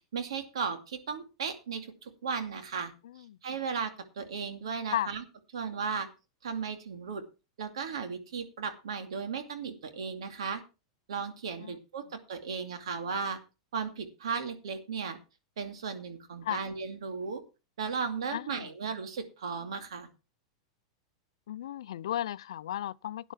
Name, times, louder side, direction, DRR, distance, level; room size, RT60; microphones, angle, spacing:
voice 1, 0.1-2.9 3.4-5.2 5.5-6.1 6.4-7.2 7.6-10.6 11.1-13.4 13.7-15.2 15.6-17.4 17.8-20.1, right 6 dB, 80° right, 2.5 m, -35 dB
voice 2, 18.3-18.7 21.5-23.3, left 12 dB, 75° left, 0.5 m, -34 dB
12.5 x 9.9 x 4.5 m
hypercardioid pair, 115°, 3 cm